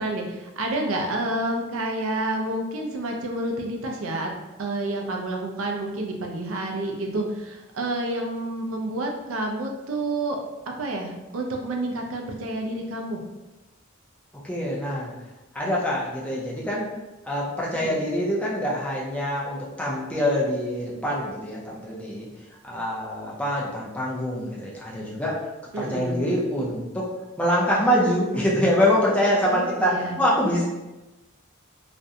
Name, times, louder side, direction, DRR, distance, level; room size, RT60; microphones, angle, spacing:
voice 1, 0.0-4.3 4.6-10.4 10.7-13.2 17.7-18.0 25.7-26.2 29.4-30.2, right 2 dB, 70° right, 2 dB, 0.4 m, -29 dB
voice 2, 14.4-15.1 15.5-16.9 17.2-22.3 22.6-25.5 25.8-27.1 27.4-30.6, equal, 5° left, -6 dB, 0.5 m, -25 dB
2.4 x 2.1 x 2.7 m, 1.1 s
head